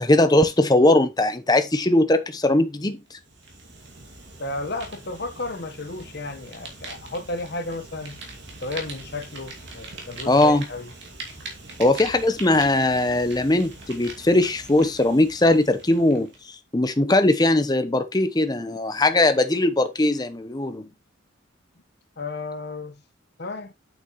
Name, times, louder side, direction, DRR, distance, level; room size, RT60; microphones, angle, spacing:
voice 1, 0.0-3.0 10.3-10.6 11.8-16.3 16.7-20.8, left 2 dB, 20° left, 0.9 m, -20 dB
Fire, 3.1-16.4, right 3 dB, 60° right, 2.4 m, -42 dB
voice 2, 4.4-8.2 8.6-10.9 22.2-23.0 23.4-23.7, left 2 dB, 55° left, 1.2 m, -33 dB
8.4 x 6.1 x 3.1 m
head